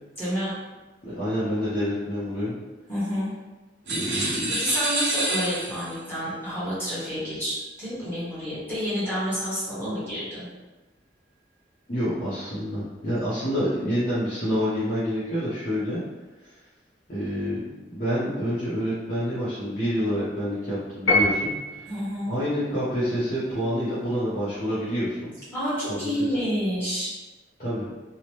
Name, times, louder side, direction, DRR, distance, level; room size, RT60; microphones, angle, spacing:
voice 1, 0.2-0.6 2.9-3.3 4.0-10.5 21.9-22.3 25.5-27.1, equal, 15° left, -11 dB, 1.1 m, -29 dB
voice 2, 1.0-2.6 3.8-4.5 11.9-16.0 17.1-17.6 17.9-21.9 22.3-25.3 25.9-26.1 27.6-27.9, equal, 40° left, -11 dB, 0.7 m, -27 dB
sound 1, 3.9-6.0, right 2 dB, 80° right, 0.6 m, -28 dB
Piano, 21.1-22.0, left 1 dB, 85° left, 0.7 m, -23 dB
2.8 x 2.0 x 3.0 m, 1.2 s
head